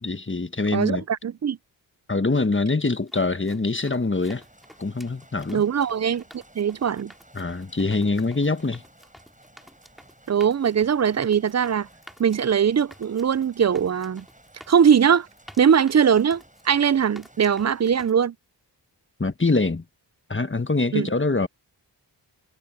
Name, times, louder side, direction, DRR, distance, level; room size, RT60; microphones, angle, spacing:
voice 1, 0.0-1.0 2.1-4.4 4.8-5.6 7.3-8.8 19.2-19.8 20.3-21.5, left 3 dB, 25° left, 1.4 m, -24 dB
voice 2, 0.7-1.6 5.5-7.1 10.3-11.9 12.2-14.2 14.7-15.3 15.6-18.3 20.9-21.1, right 7 dB, 40° right, 0.5 m, -21 dB
sound 1, 2.9-18.1, equal, ahead, 3.1 m, -52 dB
sound 2, 4.1-18.1, right 1 dB, 15° right, 7.9 m, -55 dB
wide cardioid pair, 55°, 45 cm